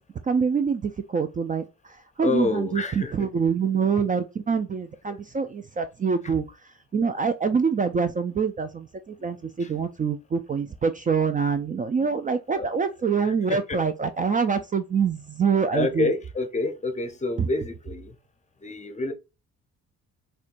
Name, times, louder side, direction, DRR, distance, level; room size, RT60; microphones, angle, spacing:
voice 1, 0.2-6.4 6.9-16.1 17.4-17.5, right 6 dB, 25° right, 0.4 m, -25 dB
voice 2, 2.2-3.1 5.1-5.2 9.2-9.3 9.6-9.7 12.6-12.7 13.2-13.8 15.7-18.2 18.6-19.1, left 3 dB, 25° left, 0.6 m, -28 dB
4.3 x 2.2 x 2.5 m
cardioid pair, 90°, 30 cm